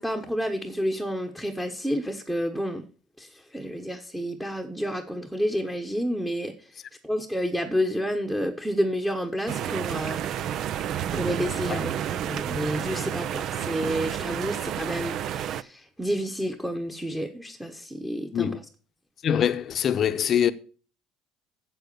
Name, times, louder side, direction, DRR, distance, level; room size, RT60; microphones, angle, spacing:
voice 1, 0.0-2.8 3.2-6.5 7.0-10.2 11.1-18.5, equal, 5° right, 1.2 m, -30 dB
sound 1, 9.5-15.6, right 10 dB, 60° right, 0.5 m, -30 dB
voice 2, 19.2-20.5, left 9 dB, 45° left, 0.8 m, -23 dB
8.0 x 7.8 x 6.9 m
supercardioid pair, 95°, 0 cm